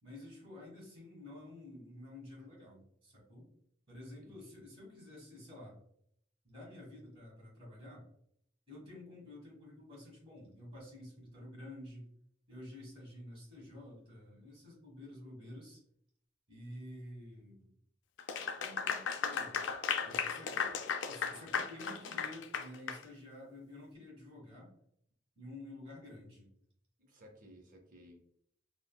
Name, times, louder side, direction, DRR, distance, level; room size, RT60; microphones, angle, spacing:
voice 1, 0.0-3.5 3.9-5.8 6.4-8.0 8.7-12.1 12.5-15.8 16.5-17.7 18.6-19.6 20.0-24.7 25.3-26.5, left 1 dB, 30° right, -2 dB, 1.3 m, -50 dB
Clapping / Applause, 18.2-23.0, left 6 dB, 70° left, 0.3 m, -36 dB
voice 2, 27.1-28.4, equal, 45° right, 2 dB, 0.6 m, -57 dB
3.7 x 2.0 x 2.2 m, 0.70 s
head